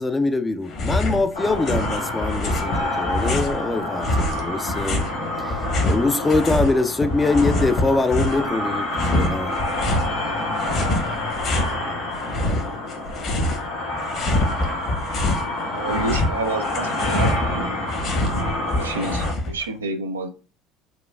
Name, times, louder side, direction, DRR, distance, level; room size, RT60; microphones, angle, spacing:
voice 1, 0.0-5.1 5.4-9.6, left 3 dB, 20° left, 0.3 m, -23 dB
sound 1, 0.7-1.2 1.5-3.6 4.0-6.7 7.0-8.5 8.9-10.1 10.6-11.7 12.1-13.7 14.0-15.5 15.8-19.7, left 1 dB, 50° left, 0.9 m, -25 dB
sound 2, 1.3-19.3, left 1 dB, 85° left, 1.4 m, -28 dB
voice 2, 15.7-17.7 18.8-20.3, right 3 dB, 90° right, 0.3 m, -29 dB
4.0 x 2.3 x 2.2 m
hypercardioid pair, 70°, 0 cm